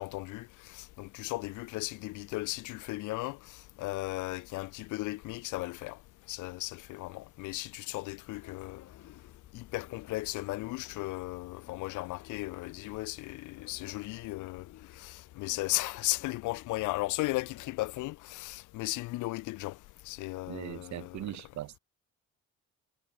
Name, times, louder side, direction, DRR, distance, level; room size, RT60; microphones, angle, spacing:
voice 1, 0.0-6.0 6.3-8.8 9.5-14.7 15.0-19.8 20.1-21.2, left 20 dB, 90° left, 0.5 m, -36 dB
sound 1, 8.3-18.2, left 13 dB, 65° left, 1.0 m, -54 dB
voice 2, 20.5-21.8, right 14 dB, 70° right, 0.9 m, -40 dB
cardioid pair, 90°, 30 cm